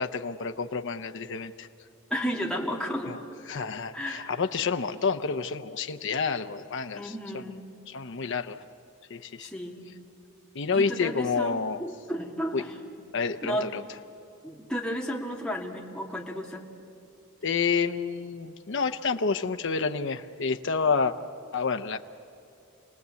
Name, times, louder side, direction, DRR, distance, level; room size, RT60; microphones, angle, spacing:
voice 1, 0.0-1.7 3.1-3.2 3.5-7.4 7.9-8.6 9.1-9.5 10.5-11.8 12.5-12.6 13.1-13.8 17.4-21.1 21.5-22.0, left 5 dB, 60° left, 7 dB, 0.7 m, -29 dB
voice 2, 2.1-3.2 3.9-4.3 6.9-7.7 9.4-9.9 10.7-12.8 13.4-13.7 14.4-16.6, equal, 5° left, -1 dB, 2.2 m, -33 dB
27.5 x 19.5 x 8.3 m, 2.7 s
head